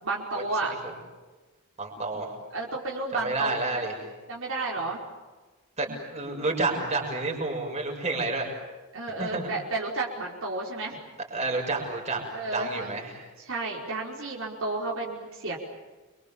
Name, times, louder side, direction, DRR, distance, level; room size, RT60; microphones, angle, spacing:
voice 1, 0.0-0.7 2.5-3.8 4.3-5.0 5.8-6.0 6.3-6.4 8.9-11.0 12.3-12.9 13.5-15.6, right 3 dB, 65° right, -3 dB, 5.2 m, -32 dB
voice 2, 1.8-2.3 3.1-4.0 5.8-8.5 9.2-9.5 11.3-12.2 12.5-13.3, right 3 dB, 30° right, 1 dB, 6.7 m, -30 dB
29.5 x 24.5 x 7.3 m, 1.3 s
head